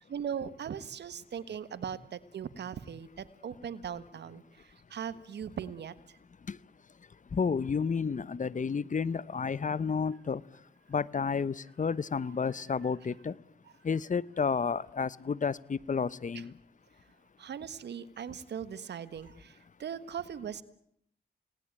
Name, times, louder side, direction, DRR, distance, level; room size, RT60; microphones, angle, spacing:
voice 1, 0.1-6.2 16.3-16.4 17.4-20.6, right 8 dB, 80° right, 15 dB, 1.5 m, -39 dB
voice 2, 7.3-10.4 10.9-13.3 13.8-16.5, left 5 dB, 45° left, 20 dB, 0.9 m, -31 dB
29.5 x 19.0 x 9.0 m, 0.74 s
cardioid pair, 55°, 17 cm